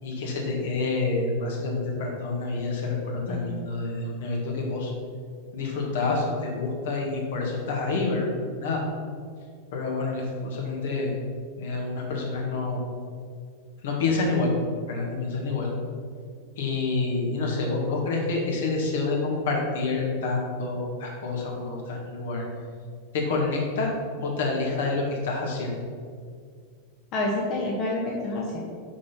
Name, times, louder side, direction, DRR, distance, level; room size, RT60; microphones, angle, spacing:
voice 1, 0.0-4.9 5.5-8.2 8.6-8.8 9.7-11.1 11.6-12.8 13.8-14.5 14.9-15.7 16.6-22.4 23.1-23.9 24.2-25.7, left 3 dB, 60° left, -1 dB, 2.0 m, -28 dB
voice 2, 3.3-3.6 27.1-28.6, left 1 dB, 35° left, -4 dB, 1.5 m, -28 dB
6.1 x 6.1 x 5.8 m, 2.1 s
figure-of-eight pair, 90°, 0 cm